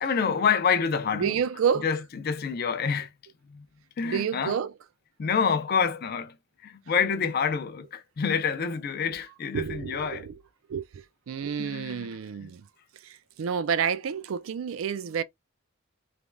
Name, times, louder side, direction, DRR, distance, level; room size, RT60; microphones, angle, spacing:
voice 1, 0.0-1.2 1.8-3.1 3.5-3.7 4.0-4.6 5.2-6.4 6.6-10.3 11.6-12.1 12.4-12.5, left 6 dB, 50° left, 0.4 m, -27 dB
voice 2, 1.1-1.9 4.0-4.7 9.5-10.4 10.7-12.7 12.9-15.2, right 7 dB, 85° right, 0.4 m, -29 dB
3.3 x 2.1 x 2.4 m
head